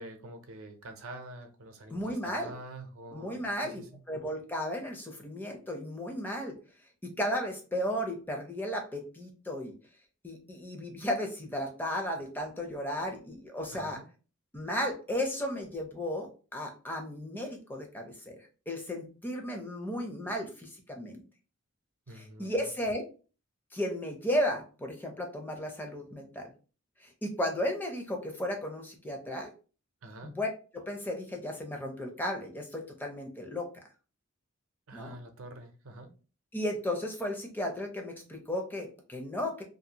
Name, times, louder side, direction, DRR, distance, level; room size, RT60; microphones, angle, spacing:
voice 1, 0.0-4.0 13.7-14.1 22.1-22.7 30.0-30.3 34.9-36.1, right 1 dB, 70° right, 6 dB, 0.6 m, -46 dB
voice 2, 1.9-2.5 3.1-3.8 4.1-6.6 7.0-9.7 10.2-14.0 14.5-18.4 18.7-21.2 22.2-23.0 23.7-26.5 27.0-29.5 30.2-30.5 30.7-33.7 34.9-35.1 36.5-39.6, left 1 dB, 10° left, 2 dB, 0.5 m, -34 dB
2.6 x 2.4 x 2.8 m, 0.36 s
head